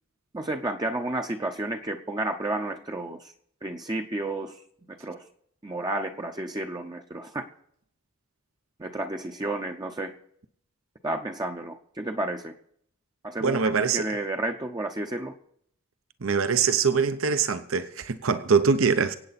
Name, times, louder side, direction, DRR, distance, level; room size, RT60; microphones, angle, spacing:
voice 1, 0.3-3.3 3.6-4.6 4.9-5.3 5.6-7.5 8.8-10.1 11.0-12.6 13.2-13.6 13.9-15.3, right 2 dB, 20° right, 0.7 m, -31 dB
voice 2, 13.4-14.0 16.2-19.1, right 5 dB, 65° right, 0.8 m, -23 dB
24.5 x 8.8 x 4.2 m
head